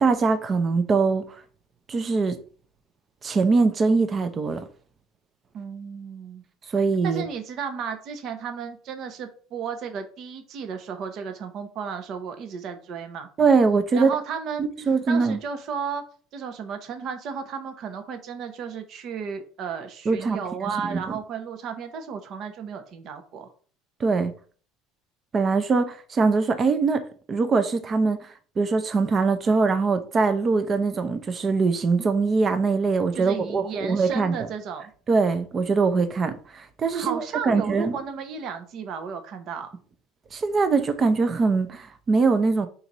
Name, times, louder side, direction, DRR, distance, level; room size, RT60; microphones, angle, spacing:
voice 1, 0.0-1.4 1.9-2.4 3.2-4.6 6.7-7.2 13.4-14.1 14.9-15.4 20.1-20.4 20.9-21.0 24.0-24.3 25.3-34.5 35.1-38.0 40.3-42.7, right 4 dB, 30° right, 0.6 m, -22 dB
voice 2, 5.5-6.4 7.0-13.3 13.9-16.0 16.3-23.5 33.1-34.9 36.9-39.7, right 6 dB, 50° right, 0.9 m, -34 dB
4.5 x 4.0 x 5.4 m
cardioid pair, 125°, 0 cm